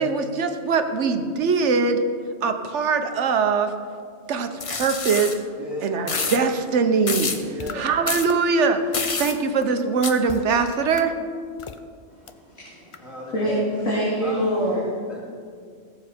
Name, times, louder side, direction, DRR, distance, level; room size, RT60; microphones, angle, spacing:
voice 1, 0.0-2.0 2.4-3.7 4.3-5.4 5.8-7.3 7.7-8.8 9.2-11.1, right 5 dB, 70° right, 7 dB, 1.2 m, -22 dB
sound 1, 4.6-5.4 6.1-6.4 7.1-7.4 8.1-8.3 8.9-9.3 10.0-10.1, left 4 dB, 35° left, 0.7 m, -27 dB
voice 2, 5.6-6.0 7.5-7.9 13.0-13.7 14.2-15.2, equal, ahead, -3 dB, 2.2 m, -36 dB
sound 2, 7.6-7.7 8.3-8.4 8.9-9.0 9.6-9.7 10.3-10.4 10.9-11.0 11.6-11.8 12.3-12.4 12.9-13.0, left 6 dB, 55° left, 0.3 m, -37 dB
voice 3, 12.1-14.8, equal, 80° left, -7 dB, 2.8 m, -26 dB
17.0 x 7.1 x 5.1 m, 2.1 s
omnidirectional pair, 1.3 m